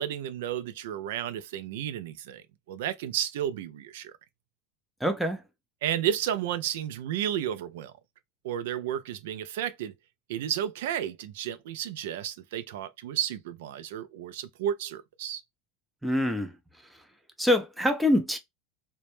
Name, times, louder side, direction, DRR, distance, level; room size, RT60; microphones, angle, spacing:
voice 1, 0.0-4.1 5.8-7.9 8.4-9.9 10.3-15.4, right 10 dB, 80° right, 0.3 m, -32 dB
voice 2, 5.0-5.4 16.0-16.5 17.4-18.4, left 1 dB, ahead, 0.5 m, -25 dB
2.1 x 2.0 x 2.9 m
supercardioid pair, 125°, 0 cm